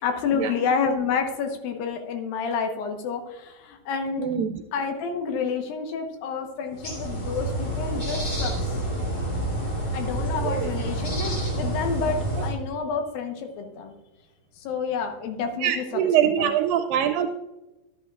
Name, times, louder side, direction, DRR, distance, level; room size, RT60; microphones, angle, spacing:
voice 1, 0.0-4.3 4.7-8.8 9.9-13.9 14.6-16.5, left 5 dB, 85° left, 5 dB, 2.9 m, -29 dB
voice 2, 4.2-4.6 10.4-10.7 15.6-17.4, right 9 dB, 85° right, 7 dB, 2.2 m, -24 dB
sound 1, 6.7-12.5, right 1 dB, 35° left, 3.8 m, -28 dB
13.0 x 8.8 x 2.4 m, 1.0 s
omnidirectional pair, 4.0 m